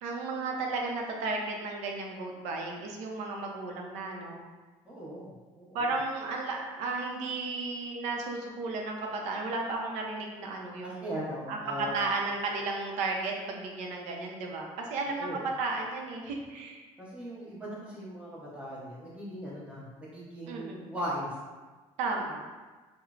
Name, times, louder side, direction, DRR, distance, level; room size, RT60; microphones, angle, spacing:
voice 1, 0.0-4.4 5.7-11.0 11.5-16.8 20.5-20.9 22.0-22.4, right 3 dB, 80° right, 1 dB, 0.5 m, -34 dB
voice 2, 4.9-5.9 10.8-11.9 15.2-15.4 17.1-19.9 20.1-21.3, equal, 10° right, -8 dB, 0.7 m, -38 dB
3.1 x 2.0 x 2.4 m, 1.3 s
cardioid pair, 125°, 12 cm